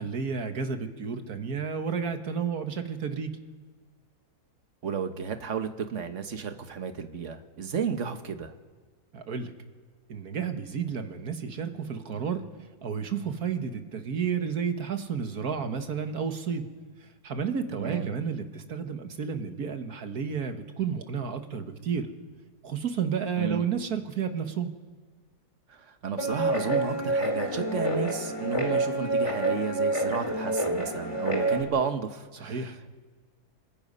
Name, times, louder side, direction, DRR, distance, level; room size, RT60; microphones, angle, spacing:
voice 1, 0.0-3.4 9.1-9.5 10.1-12.5 12.8-16.7 17.0-22.1 22.6-24.7 32.4-32.8, right 6 dB, 70° right, 7 dB, 1.9 m, -31 dB
voice 2, 4.8-8.5 17.7-18.1 23.4-23.7 25.7-32.9, right 6 dB, 50° right, 7 dB, 1.5 m, -32 dB
Guitar, 26.2-31.6, right 2 dB, 20° left, 2.8 m, -28 dB
25.0 x 22.5 x 5.5 m, 1.5 s
omnidirectional pair, 1.7 m